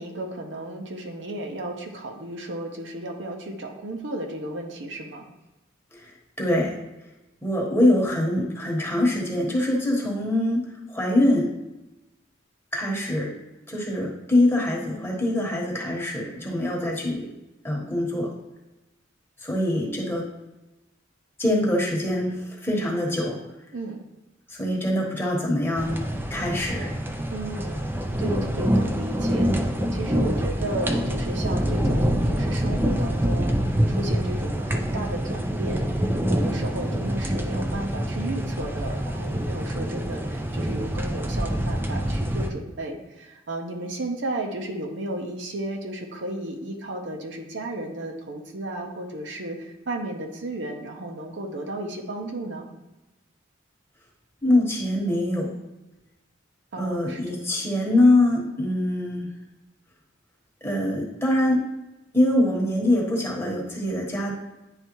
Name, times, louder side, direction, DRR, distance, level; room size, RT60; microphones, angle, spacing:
voice 1, 0.0-5.3 23.7-24.0 27.3-27.8 28.2-29.5 29.9-52.7 56.7-57.4, right 1 dB, 65° right, 2 dB, 0.8 m, -34 dB
voice 2, 5.9-6.7 7.4-11.5 12.7-13.3 13.7-17.3 17.6-18.3 19.4-20.3 21.4-23.4 24.5-26.9 54.4-55.5 56.8-59.3 60.6-61.6 62.1-64.4, left 1 dB, 10° left, -3 dB, 1.1 m, -24 dB
sound 1, 25.8-42.5, equal, 10° right, 0.4 m, -26 dB
9.8 x 3.3 x 3.0 m, 1.0 s
head